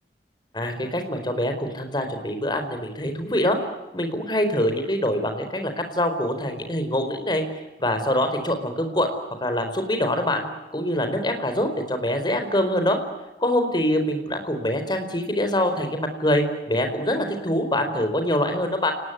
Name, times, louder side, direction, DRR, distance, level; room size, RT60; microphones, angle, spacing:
voice 1, 0.5-3.6 3.9-7.4 7.8-9.1 9.4-10.5 10.7-13.0 13.4-18.9, left 1 dB, 25° left, 6 dB, 4.6 m, -24 dB
29.0 x 20.0 x 9.5 m, 1.1 s
head